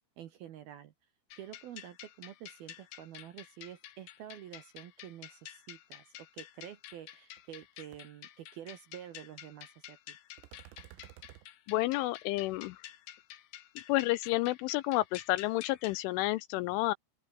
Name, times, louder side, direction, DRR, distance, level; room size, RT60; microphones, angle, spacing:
voice 1, 0.2-0.9 1.3-10.2, right 11 dB, 70° right, 2.4 m, -48 dB
sound 1, 1.3-16.0, left 12 dB, 65° left, 2.8 m, -50 dB
sound 2, 6.9-7.0 7.4-7.7 7.9-8.0 10.4-11.5, right 16 dB, 85° right, 3.9 m, -53 dB
voice 2, 11.7-12.8 13.9-16.9, left 19 dB, 80° left, 2.9 m, -30 dB
open air
omnidirectional pair, 6.0 m